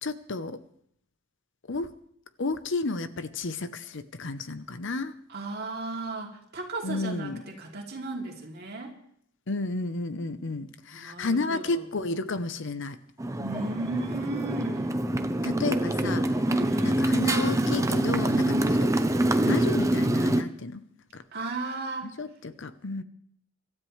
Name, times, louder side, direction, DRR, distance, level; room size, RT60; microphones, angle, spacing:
voice 1, 0.0-0.6 1.7-1.9 2.4-5.1 6.8-7.4 9.5-13.0 15.4-16.3 16.8-18.5 18.8-18.9 19.4-20.8 21.1-21.2 22.2-23.0, left 3 dB, 60° left, 12 dB, 0.8 m, -31 dB
voice 2, 5.3-8.9 10.9-11.9 13.4-15.0 16.5-17.0 18.5-18.8 21.3-22.1, right 2 dB, 50° right, 0 dB, 2.9 m, -35 dB
Motorcycle, 13.2-20.4, right 1 dB, 15° right, 0.7 m, -25 dB
25.5 x 13.0 x 3.3 m, 0.66 s
head